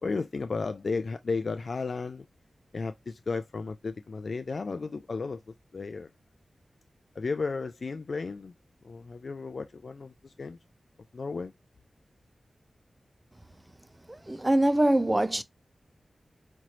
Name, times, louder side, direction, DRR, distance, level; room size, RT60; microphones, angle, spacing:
voice 1, 0.0-2.3 2.7-5.4 5.7-6.1 7.2-8.5 8.8-10.6 11.1-11.5, left 4 dB, 60° left, 0.3 m, -34 dB
voice 2, 14.1-15.4, right 1 dB, 20° right, 0.4 m, -24 dB
4.3 x 3.0 x 2.4 m
wide cardioid pair, 65°, 0 cm